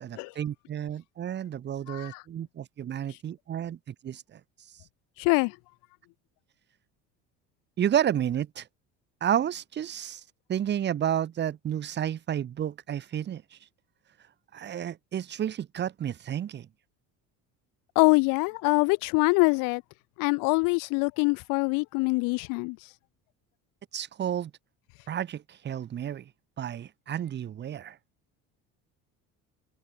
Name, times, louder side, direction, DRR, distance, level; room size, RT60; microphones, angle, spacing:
voice 1, 0.0-4.4 7.8-8.7 9.2-10.2 10.5-13.4 14.5-16.7 23.9-24.5 25.1-26.2 26.6-28.0, right 10 dB, 35° right, 7.9 m, -31 dB
voice 2, 1.9-2.2 5.2-5.6 18.0-19.8 20.2-22.8, left 30 dB, 80° left, 3.6 m, -24 dB
cardioid pair, 170°, 32 cm